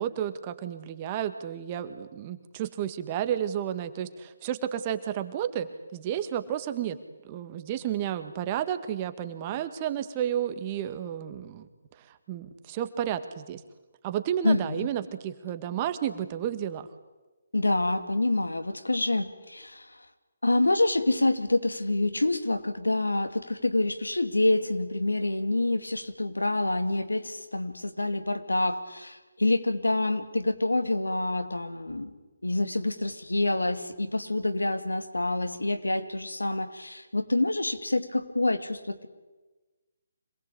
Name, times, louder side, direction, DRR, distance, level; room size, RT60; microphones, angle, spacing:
voice 1, 0.0-7.0 7.2-11.7 12.0-13.6 14.0-16.9, right 10 dB, 30° right, 10 dB, 1.9 m, -32 dB
voice 2, 14.4-14.9 17.5-19.9 20.4-32.1 32.4-39.1, left 2 dB, 85° left, 8 dB, 2.7 m, -27 dB
26.5 x 20.0 x 8.7 m, 1.2 s
figure-of-eight pair, 145°, 0 cm